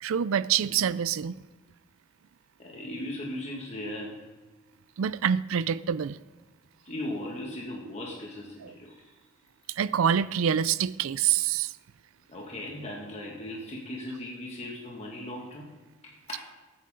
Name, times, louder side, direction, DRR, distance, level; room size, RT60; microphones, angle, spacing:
voice 1, 0.0-1.4 5.0-6.2 9.7-11.7, right 8 dB, 85° right, 0.4 m, -26 dB
voice 2, 2.6-4.2 6.9-9.1 12.3-15.7 16.0-16.4, left 1 dB, 35° left, 2.0 m, -38 dB
21.0 x 9.2 x 3.9 m
head